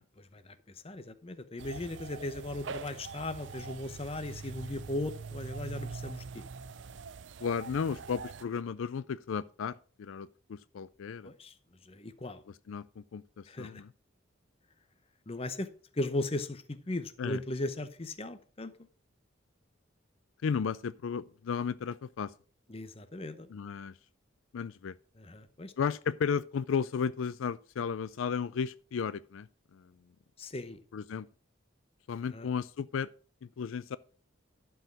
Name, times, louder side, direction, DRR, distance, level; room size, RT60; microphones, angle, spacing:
voice 1, 0.2-6.4 11.2-11.5 11.9-12.4 13.5-13.8 15.3-15.7 15.9-18.7 22.7-23.5 25.2-25.7 30.4-30.8 32.3-32.5, left 2 dB, 30° left, 0.8 m, -37 dB
sound 1, 1.6-8.4, right 5 dB, 65° right, 0.5 m, -43 dB
voice 2, 7.4-11.3 12.7-13.9 17.2-17.4 20.4-22.3 23.5-23.9 24.5-24.9 25.8-29.5 29.7-29.9 30.9-31.3 32.1-33.1 33.4-34.0, left 6 dB, 85° left, 0.4 m, -34 dB
11.5 x 4.7 x 6.0 m
head